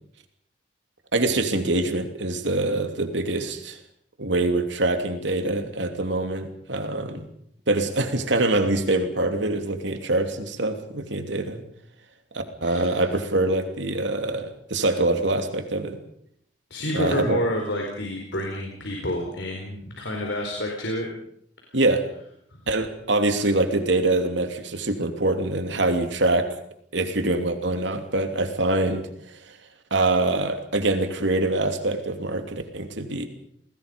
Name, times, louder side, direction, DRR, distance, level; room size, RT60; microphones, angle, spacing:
voice 1, 1.1-3.8 4.2-7.3 7.7-11.6 12.3-16.0 16.9-17.4 21.7-22.0 22.7-26.5 26.9-29.0 29.9-33.3, right 2 dB, 75° right, 6 dB, 2.9 m, -24 dB
voice 2, 16.7-21.1 21.7-21.8, left 1 dB, 75° left, 0 dB, 4.6 m, -29 dB
29.5 x 20.0 x 5.3 m, 0.68 s
head